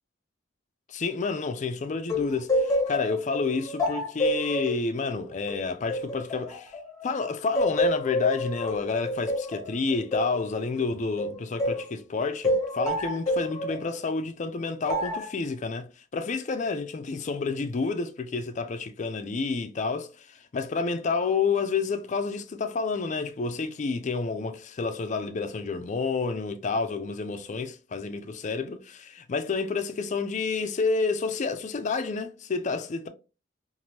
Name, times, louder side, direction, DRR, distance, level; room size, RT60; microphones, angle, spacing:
voice 1, 0.9-6.8 7.0-33.1, left 4 dB, 35° left, 0.4 m, -29 dB
sound 1, 2.1-7.1 7.5-11.9 12.4-13.9 14.9-15.3, left 1 dB, 15° left, 0.7 m, -28 dB
3.1 x 2.5 x 2.7 m
head